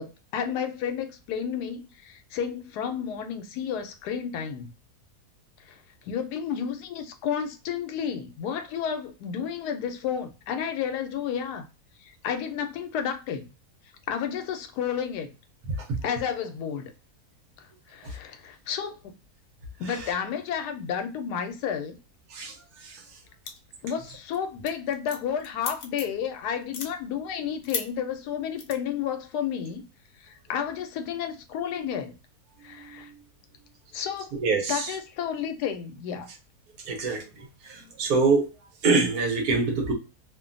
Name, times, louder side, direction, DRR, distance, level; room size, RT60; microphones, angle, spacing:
voice 1, 0.0-4.7 5.7-5.8 6.0-11.6 12.0-13.4 14.1-15.3 16.0-16.9 17.6-19.0 19.8-22.0 23.8-29.8 30.2-32.2 32.6-33.1 33.9-34.3 34.7-36.3, left 8 dB, 85° left, 1.1 m, -31 dB
sound 1, 23.5-23.8 24.2-24.4 24.7-26.2 26.6-26.9 27.6-27.9 28.6-28.7, left 6 dB, 65° left, 0.9 m, -34 dB
voice 2, 34.4-34.9 36.9-37.2 37.7-38.5 38.8-39.9, right 4 dB, 75° right, 1.3 m, -24 dB
2.9 x 2.2 x 2.4 m
omnidirectional pair, 1.7 m